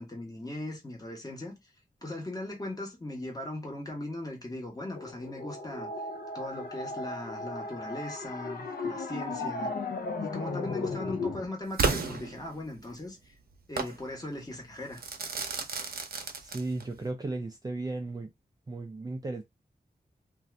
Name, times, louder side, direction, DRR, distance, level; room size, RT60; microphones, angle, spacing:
voice 1, 0.0-1.7 2.0-5.9 6.3-9.7 10.2-13.3 13.7-15.0, left 1 dB, 25° left, 1.2 m, -39 dB
sound 1, 4.9-11.5, left 3 dB, 70° left, 0.6 m, -36 dB
Crackle / Fireworks, 11.8-12.9 13.8-14.0 15.0-17.0, right 4 dB, 70° right, 0.7 m, -32 dB
voice 2, 16.4-18.3 18.7-19.4, right 2 dB, 25° right, 0.4 m, -35 dB
2.6 x 2.4 x 3.2 m
wide cardioid pair, 120°, 16 cm